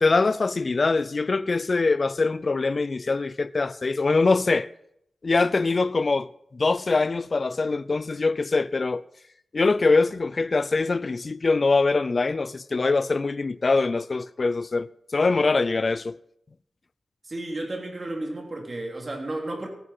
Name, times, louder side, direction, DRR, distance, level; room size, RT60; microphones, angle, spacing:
voice 1, 0.0-4.7 5.2-9.0 9.5-16.2, left 3 dB, 45° left, 0.4 m, -23 dB
voice 2, 17.2-19.7, right 1 dB, 35° right, 3.2 m, -32 dB
16.0 x 10.0 x 5.7 m
wide cardioid pair, 105°, 0 cm